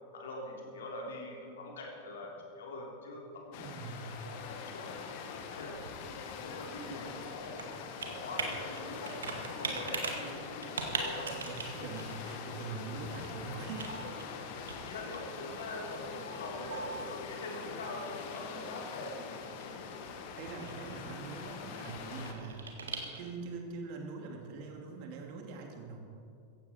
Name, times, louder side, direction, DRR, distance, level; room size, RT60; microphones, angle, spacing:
voice 1, 0.1-4.9 5.5-5.8 6.4-7.7 8.0-9.2 9.4-11.3 14.8-19.4, left 2 dB, 65° left, -1 dB, 3.3 m, -43 dB
sound 1, 3.5-22.3, left 6 dB, 45° left, 1.5 m, -44 dB
voice 2, 3.6-4.1 11.3-14.0 19.6-19.8 20.4-26.0, right 4 dB, 45° right, 2 dB, 2.5 m, -43 dB
Computer keyboard, 5.2-23.5, right 4 dB, 70° right, 2.0 m, -43 dB
16.0 x 15.5 x 4.4 m, 2.5 s
figure-of-eight pair, 90°, 0 cm